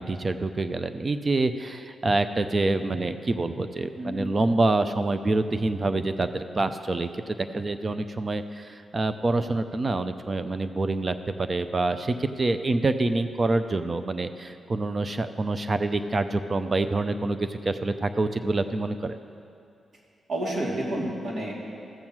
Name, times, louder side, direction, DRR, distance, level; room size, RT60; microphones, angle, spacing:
voice 1, 0.0-19.2, right 2 dB, 40° right, 10 dB, 0.7 m, -26 dB
voice 2, 3.9-4.3 12.6-12.8 20.3-21.5, right 1 dB, 65° right, -4 dB, 2.9 m, -30 dB
14.5 x 7.2 x 6.2 m, 2.5 s
supercardioid pair, 55°, 0 cm